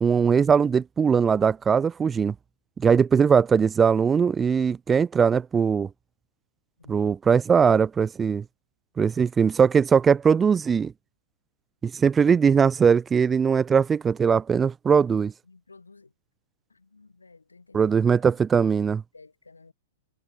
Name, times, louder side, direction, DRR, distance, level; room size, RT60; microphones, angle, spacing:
voice 1, 0.0-2.3 2.8-5.9 6.9-8.4 9.0-10.9 11.8-15.3 17.7-19.0, right 6 dB, 15° right, 0.4 m, -20 dB
voice 2, 15.4-16.1 16.7-17.9 18.3-18.4 19.1-19.7, left 3 dB, 80° left, 5.1 m, -53 dB
figure-of-eight pair, 105°, 0 cm